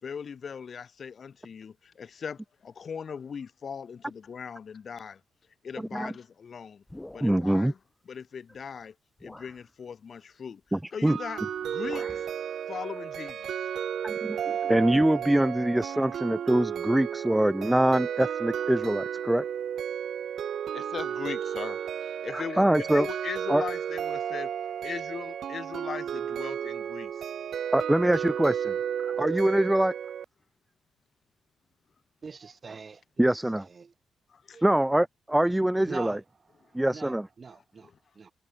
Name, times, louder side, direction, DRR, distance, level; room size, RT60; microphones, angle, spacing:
voice 1, 0.0-5.2 5.6-6.8 7.1-7.8 8.1-8.9 9.2-10.6 10.9-12.3 12.7-13.5 20.7-24.5 24.8-27.3 34.3-34.6, left 6 dB, 50° left, 2.6 m, -39 dB
voice 2, 5.8-6.1 7.2-7.7 10.7-11.2 14.0-19.4 22.3-23.1 23.5-23.6 27.7-28.8 29.0-29.9 33.2-33.6 34.6-36.2 36.7-37.3, right 1 dB, 10° right, 0.8 m, -24 dB
sound 1, 6.9-7.7 8.5-8.6 9.2-9.6 11.0-11.3 11.6-12.4, left 1 dB, 10° left, 4.6 m, -47 dB
sound 2, 11.1-30.3, right 9 dB, 70° right, 2.8 m, -33 dB
voice 3, 32.2-33.9 34.5-34.6 35.9-36.2 36.6-38.3, right 5 dB, 40° right, 6.5 m, -43 dB
cardioid pair, 85°, 0 cm